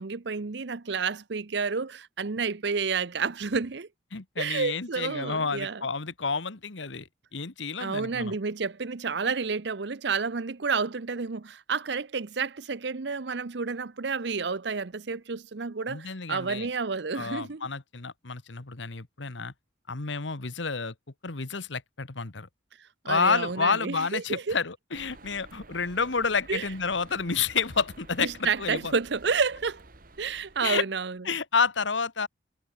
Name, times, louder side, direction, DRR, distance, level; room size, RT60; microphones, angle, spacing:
voice 1, 0.0-3.9 4.4-5.8 7.8-17.6 23.0-24.6 26.5-26.7 28.2-29.8 30.2-31.2, right 5 dB, 65° right, 0.8 m, -30 dB
voice 2, 4.1-8.4 15.9-16.7 17.1-19.5 19.9-20.9 21.2-22.5 23.0-28.9 30.6-30.8 31.2-32.3, left 5 dB, 75° left, 1.4 m, -30 dB
sound 1, 24.9-30.7, right 2 dB, 45° right, 2.1 m, -51 dB
head